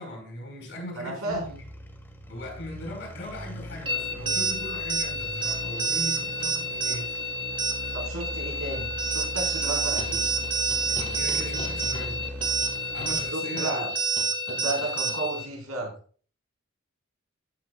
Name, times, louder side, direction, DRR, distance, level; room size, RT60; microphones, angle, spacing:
voice 1, 0.0-1.5 2.3-7.1 10.9-12.2 12.9-13.9, left 1 dB, 60° left, 4.6 m, -38 dB
voice 2, 1.0-1.4 7.9-10.2 13.3-13.9 14.5-15.9, right 2 dB, 90° right, 4.5 m, -32 dB
sound 1, 1.3-13.4, equal, 10° left, 1.5 m, -39 dB
sound 2, 3.9-15.5, right 3 dB, 25° right, 0.9 m, -29 dB
sound 3, 10.0-15.2, left 1 dB, 30° left, 2.1 m, -43 dB
14.5 x 7.9 x 2.4 m
head